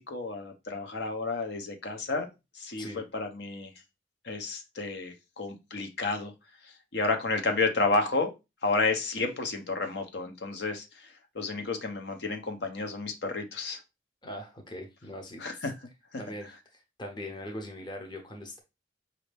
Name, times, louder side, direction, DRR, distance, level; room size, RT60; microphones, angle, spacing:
voice 1, 0.0-2.3 2.5-2.9 3.1-3.7 4.2-6.3 6.9-8.3 8.6-10.9 11.3-13.8 15.4-15.7, left 3 dB, 60° left, 5 dB, 0.8 m, -31 dB
voice 2, 14.2-15.4 16.2-18.6, left 1 dB, 25° left, 4 dB, 0.7 m, -41 dB
5.2 x 2.7 x 3.3 m, 0.25 s
head